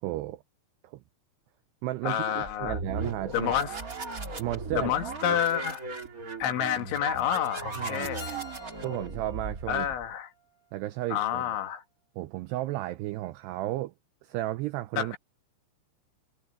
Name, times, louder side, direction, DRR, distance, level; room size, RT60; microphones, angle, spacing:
voice 1, 0.0-0.4 0.8-1.0 1.8-3.5 4.4-4.9 7.8-8.1 8.8-9.9 10.7-11.5 12.2-13.9 14.2-15.2, right 16 dB, 85° right, 2.4 m, -33 dB
voice 2, 2.0-2.8 3.3-3.8 4.7-5.8 6.4-8.4 9.7-10.3 11.1-11.8 15.0-15.2, left 10 dB, 75° left, 4.1 m, -29 dB
sound 1, 2.4-10.1, right 3 dB, 30° right, 1.5 m, -37 dB
Keyboard (musical), 8.2-11.0, left 3 dB, 15° left, 6.4 m, -49 dB
omnidirectional pair, 5.5 m